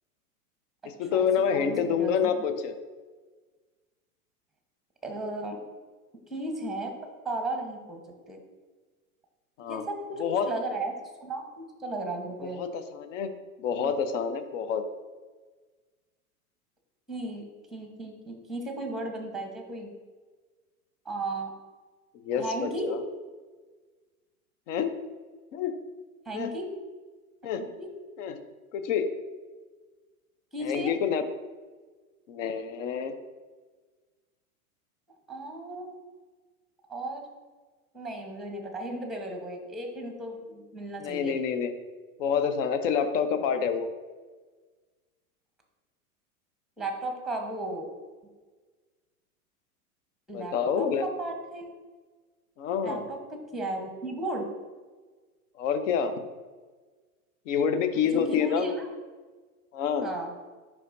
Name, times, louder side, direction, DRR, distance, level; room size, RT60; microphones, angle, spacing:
voice 1, 0.9-2.7 9.6-9.8 10.2-10.5 12.4-13.3 13.6-14.8 22.2-23.0 24.7-24.9 25.5-25.8 26.3-26.5 27.4-27.7 28.2-28.4 28.7-29.1 30.6-31.2 32.3-33.1 41.0-41.7 42.2-43.9 50.3-51.0 52.6-53.0 55.6-56.1 57.5-58.7 59.7-60.1, left 7 dB, 55° left, 9 dB, 0.8 m, -27 dB
voice 2, 1.5-2.3 5.0-5.6 6.3-6.9 7.2-8.0 8.3-8.4 9.7-10.9 11.2-12.6 13.7-14.0 17.1-19.9 21.0-21.5 22.4-22.9 26.3-26.7 27.8-27.9 30.5-31.0 35.3-35.9 36.9-37.2 37.9-41.4 46.8-47.9 50.3-51.7 52.8-54.5 58.1-58.9 60.0-60.3, right 1 dB, ahead, 3 dB, 1.0 m, -35 dB
10.0 x 3.5 x 2.6 m, 1.4 s
hypercardioid pair, 100°, 44 cm